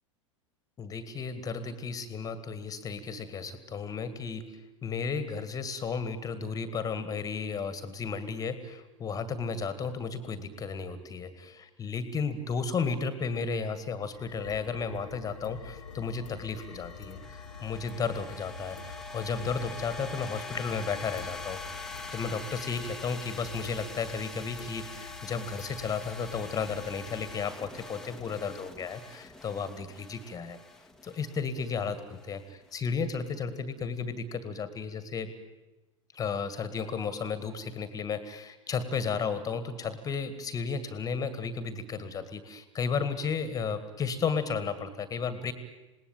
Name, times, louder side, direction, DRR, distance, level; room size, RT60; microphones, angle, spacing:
voice 1, 0.8-17.2 17.6-30.6 31.0-35.3 36.1-45.5, left 5 dB, 20° left, 13 dB, 2.0 m, -34 dB
sound 1, 14.1-27.5, left 7 dB, 70° left, 1.3 m, -47 dB
sound 2, 14.4-32.7, left 3 dB, 5° left, 1.6 m, -45 dB
27.5 x 19.5 x 9.1 m, 1.1 s
figure-of-eight pair, 90°, 17 cm